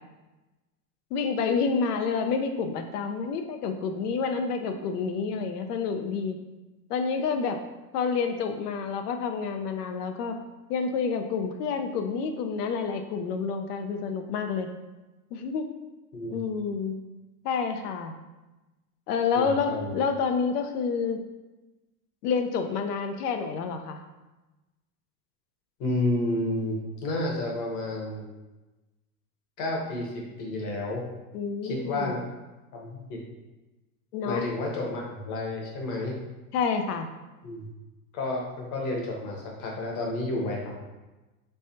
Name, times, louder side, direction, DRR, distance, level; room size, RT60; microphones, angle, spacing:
voice 1, 1.1-6.4 6.9-7.6 7.9-10.4 10.7-14.7 15.3-15.7 16.3-17.0 17.4-18.1 19.1-21.2 22.2-24.0 31.3-32.2 34.1-34.4 36.5-37.1, left 5 dB, 75° left, 6 dB, 0.6 m, -28 dB
voice 2, 19.3-19.9 25.8-28.2 29.6-31.0 31.6-32.2 32.7-33.2 34.2-36.1 37.4-37.7 38.1-40.7, left 2 dB, 40° left, -1 dB, 1.0 m, -31 dB
3.3 x 3.2 x 2.8 m, 1.1 s
supercardioid pair, 130°, 47 cm